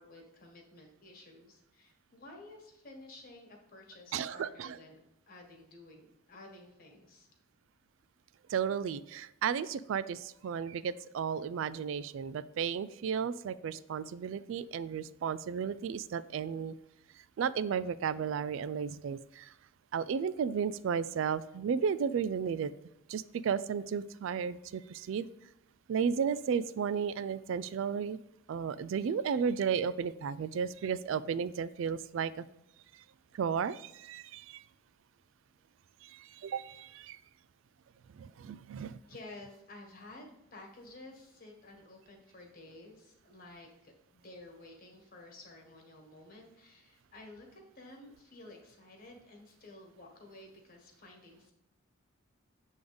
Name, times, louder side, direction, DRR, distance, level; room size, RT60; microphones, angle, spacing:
voice 1, 0.0-5.0 5.3-7.3 39.1-51.5, left 2 dB, 45° left, 1 dB, 1.5 m, -52 dB
voice 2, 4.1-4.8 8.5-16.7 17.4-19.5 19.9-22.7 23.1-25.3 25.9-28.2 28.5-32.4 33.3-34.6 36.0-37.2 38.2-39.0, right 7 dB, 65° right, 16 dB, 0.3 m, -34 dB
7.8 x 3.6 x 5.1 m, 0.86 s
head